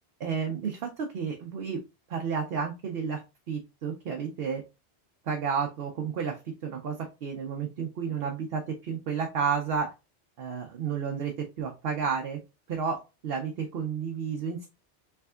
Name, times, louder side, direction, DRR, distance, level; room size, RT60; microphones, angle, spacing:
voice 1, 0.2-1.8 2.1-3.2 3.5-4.6 5.2-9.9 10.4-12.4 12.7-14.7, right 6 dB, 65° right, 2 dB, 0.8 m, -31 dB
3.4 x 3.4 x 2.3 m, 0.27 s
omnidirectional pair, 1.2 m